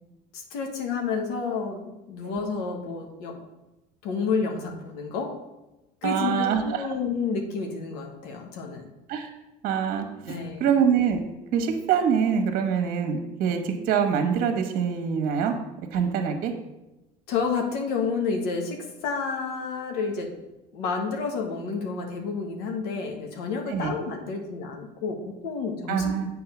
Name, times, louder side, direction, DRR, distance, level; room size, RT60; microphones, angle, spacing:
voice 1, 0.3-3.4 4.0-5.3 6.0-8.9 10.3-10.7 17.3-20.3 20.7-26.1, left 5 dB, 80° left, 3 dB, 1.2 m, -30 dB
voice 2, 6.0-6.8 9.1-9.3 9.6-11.2 11.5-15.5 15.9-16.5 23.7-23.9 25.9-26.3, right 7 dB, 60° right, 6 dB, 1.2 m, -25 dB
7.8 x 3.7 x 6.0 m, 0.99 s
cardioid pair, 115°, 17 cm